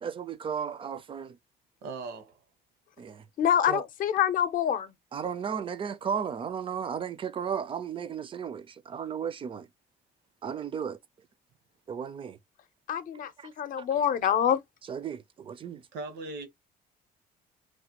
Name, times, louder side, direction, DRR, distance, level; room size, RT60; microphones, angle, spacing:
voice 1, 0.0-1.4 3.0-3.3 3.7-3.8 5.1-9.7 10.4-11.0 11.9-12.4 13.1-13.5 13.8-14.0 14.8-15.8, right 7 dB, 30° right, 0.4 m, -35 dB
voice 2, 1.8-2.3 15.9-16.5, right 3 dB, 80° right, 1.0 m, -38 dB
voice 3, 3.4-4.9 12.9-13.3 13.6-14.6, left 9 dB, 55° left, 0.6 m, -25 dB
3.2 x 2.1 x 2.9 m
cardioid pair, 110°, 17 cm